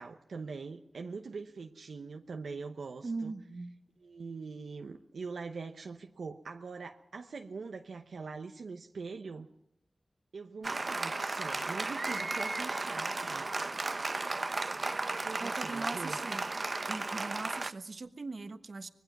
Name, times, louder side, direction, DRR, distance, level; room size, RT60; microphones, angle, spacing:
voice 1, 0.0-3.3 4.0-9.5 10.3-13.5 15.2-16.2, right 4 dB, 90° right, 4 dB, 0.9 m, -43 dB
voice 2, 3.0-3.7 15.4-16.4 16.9-18.9, right 3 dB, 65° right, 9 dB, 1.3 m, -40 dB
Applause, 10.6-17.7, right 3 dB, 45° right, 0.7 m, -34 dB
25.0 x 20.0 x 6.0 m, 0.75 s
cardioid pair, 50°, 0 cm